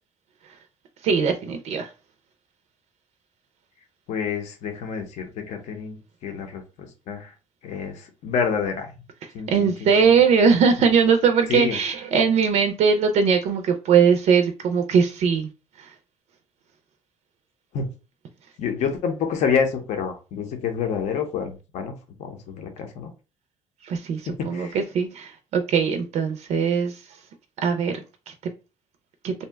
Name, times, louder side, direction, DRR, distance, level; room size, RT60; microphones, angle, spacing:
voice 1, 1.0-1.9 9.5-15.5 15.8-15.9 23.8-27.0 27.6-28.3 29.2-29.3, right 6 dB, 60° right, 0.4 m, -20 dB
voice 2, 4.1-7.3 7.6-8.9 9.3-10.2 11.5-11.8 17.7-17.9 18.6-23.1 24.3-24.8, left 6 dB, 65° left, 0.7 m, -28 dB
2.7 x 2.1 x 3.3 m
cardioid pair, 145°, 13 cm